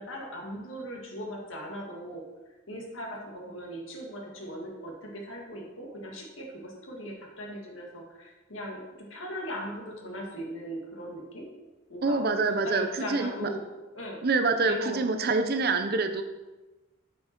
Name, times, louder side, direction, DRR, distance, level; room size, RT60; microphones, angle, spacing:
voice 1, 0.0-2.2 2.7-11.5 11.9-13.6 13.9-14.2 14.6-15.1, equal, 70° left, 0 dB, 2.0 m, -39 dB
voice 2, 12.0-13.5 14.2-16.2, right 3 dB, 50° right, 7 dB, 0.6 m, -26 dB
8.5 x 5.6 x 4.6 m, 1.1 s
head